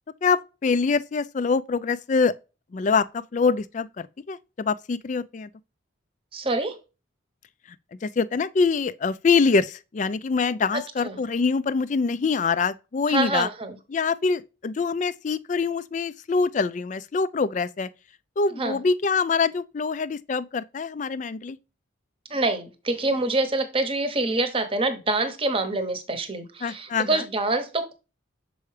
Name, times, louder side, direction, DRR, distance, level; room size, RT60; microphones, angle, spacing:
voice 1, 0.2-2.3 2.7-5.5 8.0-13.5 13.9-17.9 18.4-21.6 26.6-27.3, left 4 dB, 40° left, 0.3 m, -24 dB
voice 2, 6.3-6.8 10.7-11.2 13.1-13.8 18.6-18.8 22.3-27.9, right 2 dB, 30° right, 0.9 m, -26 dB
6.6 x 4.6 x 3.2 m
head